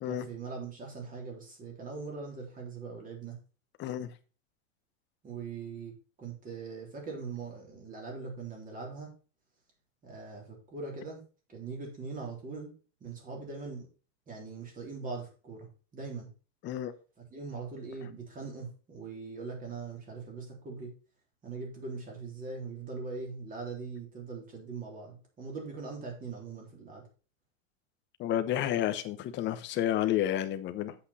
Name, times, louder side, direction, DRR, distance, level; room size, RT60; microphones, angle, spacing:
voice 1, 0.0-3.4 5.2-9.1 10.0-11.2 11.5-12.7 13.0-13.9 14.3-16.3 17.3-20.9 21.4-27.1, right 4 dB, 20° right, 3.8 m, -41 dB
voice 2, 3.8-4.1 16.6-16.9 28.2-30.9, left 12 dB, 30° left, 1.0 m, -30 dB
8.4 x 8.1 x 4.2 m
supercardioid pair, 150°, 39 cm